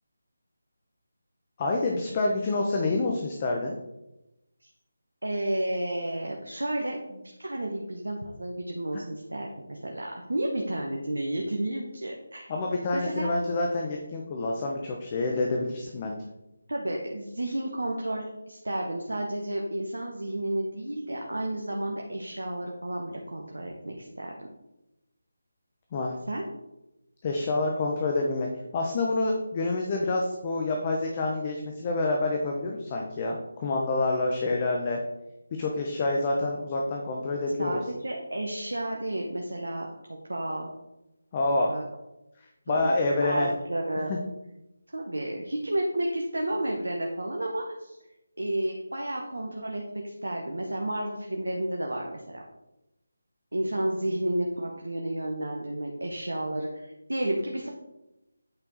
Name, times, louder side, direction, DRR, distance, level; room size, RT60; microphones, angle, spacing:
voice 1, 1.6-3.7 12.5-16.2 25.9-26.2 27.2-28.5 28.7-35.0 35.6-37.8 41.3-41.7 42.7-43.5 44.1-44.2, left 2 dB, 25° left, 1 dB, 0.8 m, -27 dB
voice 2, 5.2-12.5 12.9-13.3 16.7-24.5 26.3-26.4 37.6-40.7 41.7-41.8 42.7-44.2 44.9-48.0 48.4-52.4 53.5-57.7, right 1 dB, 75° right, 1 dB, 1.1 m, -31 dB
8.7 x 4.5 x 4.0 m, 0.95 s
figure-of-eight pair, 155°, 0 cm